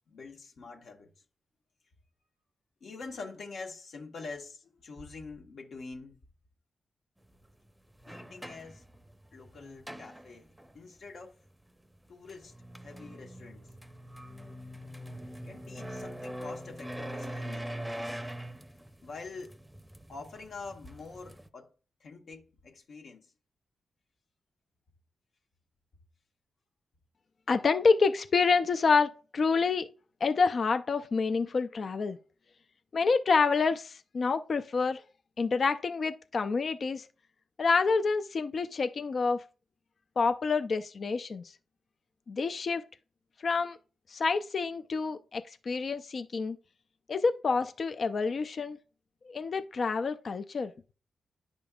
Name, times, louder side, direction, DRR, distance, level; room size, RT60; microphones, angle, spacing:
voice 1, 0.1-1.1 2.8-6.2 8.1-8.8 9.3-11.3 12.1-12.5 12.8-13.7 15.4-17.8 19.0-19.6 20.1-21.7 22.0-23.3, left 4 dB, 75° left, 1.1 m, -45 dB
sound 1, 7.2-7.3 7.9-10.8 12.1-21.5, equal, 10° right, 0.6 m, -43 dB
voice 2, 27.5-29.9 30.2-32.2 32.9-35.0 35.4-37.1 37.6-39.4 40.2-41.5 42.3-42.8 43.4-43.8 44.1-46.6 47.1-48.8 49.2-50.7, left 4 dB, 55° left, 0.4 m, -28 dB
10.0 x 5.2 x 2.4 m
cardioid pair, 75°, 0 cm